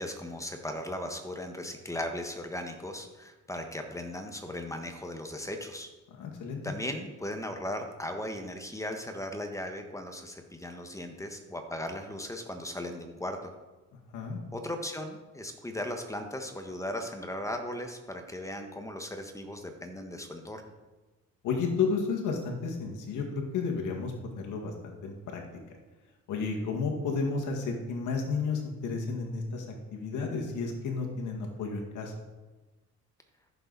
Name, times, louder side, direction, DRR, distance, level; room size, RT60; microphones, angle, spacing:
voice 1, 0.0-5.9 6.6-13.5 14.5-20.6, left 1 dB, 10° left, 5 dB, 1.4 m, -37 dB
voice 2, 6.2-6.7 14.1-14.4 21.4-25.4 26.3-29.7 29.9-32.1, left 4 dB, 80° left, 1 dB, 1.9 m, -32 dB
14.5 x 7.0 x 4.1 m, 1.2 s
cardioid pair, 90°, 30 cm